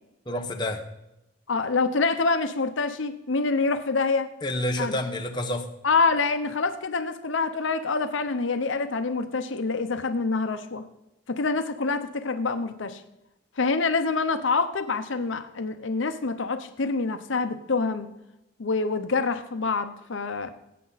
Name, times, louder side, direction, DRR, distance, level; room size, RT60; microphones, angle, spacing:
voice 1, 0.3-0.8 4.4-5.7, left 1 dB, 20° left, 3 dB, 1.0 m, -28 dB
voice 2, 1.5-4.3 4.8-5.0 5.8-10.8 11.3-13.0 13.6-18.1 18.6-20.5, left 4 dB, 75° left, 9 dB, 0.7 m, -26 dB
17.0 x 8.4 x 4.0 m, 0.90 s
head